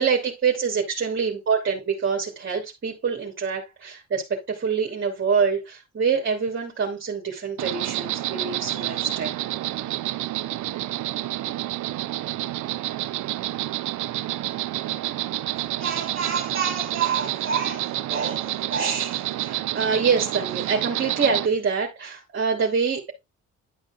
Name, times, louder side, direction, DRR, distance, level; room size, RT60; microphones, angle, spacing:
voice 1, 0.0-9.4 15.8-23.1, right 6 dB, 40° right, 2.9 m, -26 dB
Insect, 7.6-21.5, right 15 dB, 75° right, 0.6 m, -29 dB
11.0 x 5.1 x 3.6 m
cardioid pair, 90°, 30 cm